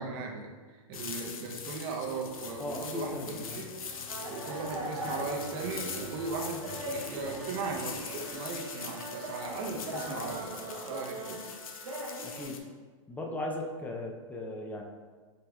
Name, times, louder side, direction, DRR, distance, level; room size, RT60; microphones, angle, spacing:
voice 1, 0.0-3.7 4.3-8.0 8.3-11.4, right 4 dB, 45° right, 1 dB, 0.7 m, -37 dB
sound 1, 0.9-12.6, left 6 dB, 75° left, 0.5 m, -43 dB
sound 2, 1.9-8.5 9.4-10.5, right 1 dB, 30° left, 1.2 m, -49 dB
voice 2, 2.6-3.6 12.2-12.6 13.1-14.8, left 1 dB, 10° left, 0 dB, 0.4 m, -37 dB
sound 3, 4.1-12.4, right 1 dB, 80° right, 1.0 m, -40 dB
5.1 x 2.8 x 2.3 m, 1.5 s
hypercardioid pair, 120°, 18 cm